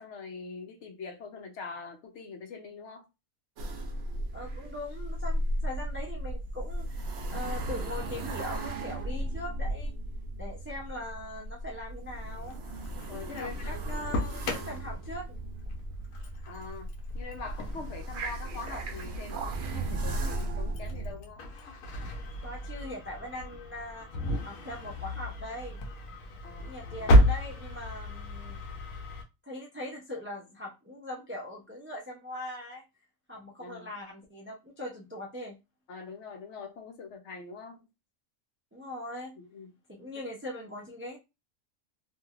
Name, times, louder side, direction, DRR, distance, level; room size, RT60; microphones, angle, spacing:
voice 1, 0.0-3.0 13.1-13.8 14.4-14.8 16.5-16.9 17.1-21.4 26.4-27.2 33.6-33.9 35.9-37.9 39.4-39.7 40.1-40.2, left 4 dB, 65° left, 0.9 m, -43 dB
sound 1, 3.6-21.1, right 1 dB, 60° right, 0.8 m, -36 dB
voice 2, 4.3-9.9 10.4-12.5 13.3-15.4 22.4-24.1 24.4-25.8 26.6-28.6 29.5-32.8 33.3-35.6 38.7-39.3 39.9-41.2, left 1 dB, 20° right, 0.3 m, -41 dB
Engine starting, 12.3-29.2, equal, 85° left, 1.1 m, -32 dB
3.0 x 2.6 x 2.3 m
omnidirectional pair, 1.4 m